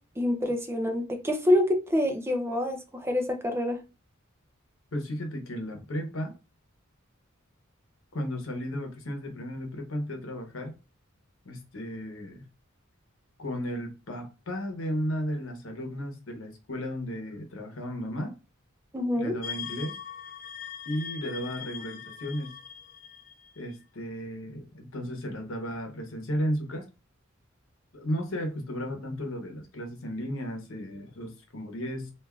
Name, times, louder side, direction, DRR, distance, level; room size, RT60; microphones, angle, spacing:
voice 1, 0.2-3.8 18.9-19.4, left 1 dB, 10° right, 0.5 m, -26 dB
voice 2, 4.9-6.3 8.1-10.7 11.4-12.5 13.4-18.3 19.2-19.9 20.8-22.5 23.6-26.8 27.9-32.1, equal, 75° left, 0.9 m, -34 dB
sound 1, 19.4-23.8, left 7 dB, 40° left, 0.4 m, -41 dB
3.5 x 2.5 x 2.3 m
head